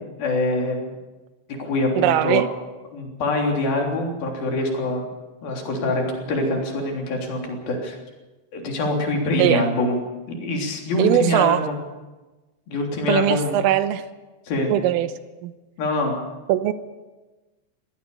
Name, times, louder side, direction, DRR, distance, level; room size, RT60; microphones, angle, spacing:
voice 1, 0.2-0.9 1.6-2.4 2.9-5.1 5.4-8.0 8.5-10.0 10.3-11.8 12.7-13.6 14.5-14.7 15.8-16.1, left 2 dB, 50° left, 1 dB, 4.9 m, -24 dB
voice 2, 2.0-2.5 9.4-9.7 11.0-11.6 13.1-14.1 14.7-15.1 15.4-15.5 16.5-16.7, right 12 dB, 90° right, 11 dB, 3.6 m, -20 dB
22.5 x 17.0 x 7.1 m, 1.2 s
omnidirectional pair, 5.7 m